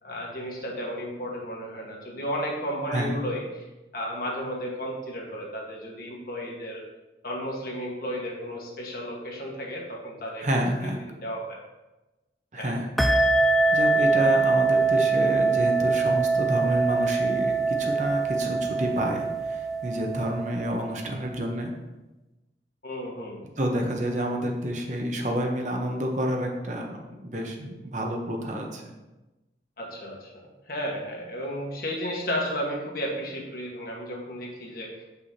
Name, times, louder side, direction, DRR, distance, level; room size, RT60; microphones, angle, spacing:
voice 1, 0.0-3.6 3.9-6.8 7.2-10.4 10.8-10.9 11.2-11.6 12.6-12.7 22.8-23.4 29.8-30.3 30.7-35.0, equal, 55° left, -1 dB, 1.4 m, -33 dB
voice 2, 10.4-11.0 12.5-13.3 13.7-21.7 23.6-28.9, equal, 45° right, 2 dB, 0.8 m, -29 dB
sound 1, 13.0-21.1, right 3 dB, ahead, 0.3 m, -23 dB
7.6 x 5.6 x 2.8 m, 1.1 s
head